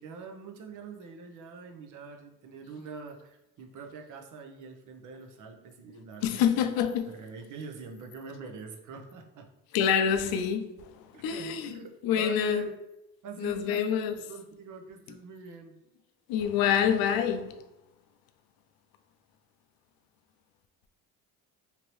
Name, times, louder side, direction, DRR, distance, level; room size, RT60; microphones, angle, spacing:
voice 1, 0.0-6.7 7.1-9.5 11.1-11.9 12.2-12.7 13.2-13.9 14.1-15.8, right 5 dB, 55° right, 0.7 m, -44 dB
voice 2, 6.2-7.1 9.7-12.7 13.4-14.1 16.3-17.6, left 8 dB, 80° left, 0.5 m, -27 dB
2.9 x 2.7 x 3.0 m
cardioid pair, 95°, 36 cm